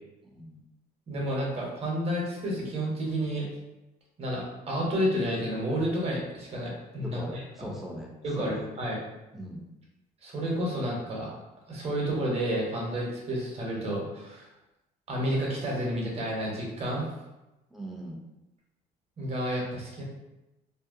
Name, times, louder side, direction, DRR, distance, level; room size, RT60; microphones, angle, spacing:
voice 1, 0.3-0.6 7.0-8.7 9.3-9.6 17.7-18.2, equal, ahead, -3 dB, 0.5 m, -40 dB
voice 2, 1.1-3.5 4.2-7.7 8.2-9.0 10.2-11.3 11.7-14.4 15.1-17.1 19.2-20.0, equal, 35° right, -3 dB, 0.8 m, -30 dB
2.6 x 2.1 x 2.5 m, 0.98 s
cardioid pair, 110°, 17 cm